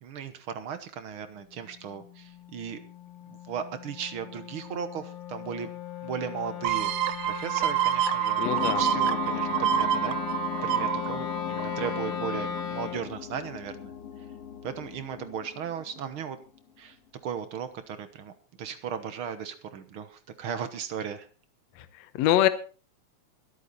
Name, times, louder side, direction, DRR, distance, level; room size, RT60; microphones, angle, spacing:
voice 1, 0.0-2.8 3.3-5.7 6.0-6.9 7.2-13.9 14.6-16.4 16.8-17.0 17.2-18.3 18.6-21.3, right 7 dB, 55° right, 10 dB, 1.6 m, -36 dB
Wind instrument woodwind instrument, 1.5-13.1, left 8 dB, 90° left, 3.4 m, -38 dB
sound 1, 6.6-12.1 12.6-12.7, right 10 dB, 90° right, 1.1 m, -27 dB
voice 2, 8.4-8.8 21.8-22.5, left 12 dB, 70° left, 11 dB, 2.0 m, -24 dB
sound 2, 8.5-16.6, left 9 dB, 50° left, 2.7 m, -37 dB
23.0 x 8.5 x 4.1 m, 0.37 s
omnidirectional pair, 3.4 m